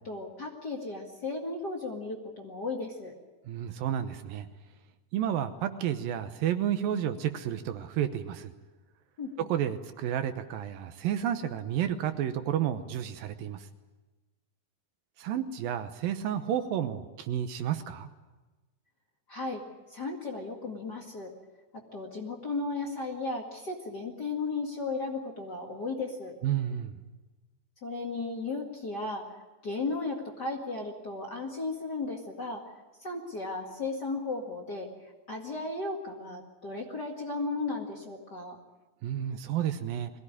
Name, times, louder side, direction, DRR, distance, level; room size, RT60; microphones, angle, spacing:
voice 1, 0.0-3.1 9.2-9.5 19.3-19.6 19.9-21.3 21.7-26.3 27.8-29.4 29.6-32.7 33.0-38.6, left 3 dB, 35° left, 0 dB, 2.0 m, -35 dB
voice 2, 3.5-4.5 5.1-8.5 9.5-13.7 15.2-18.1 26.4-26.9 39.0-40.1, right 10 dB, 75° right, 9 dB, 2.6 m, -31 dB
22.0 x 17.0 x 9.8 m, 1.2 s
omnidirectional pair, 4.3 m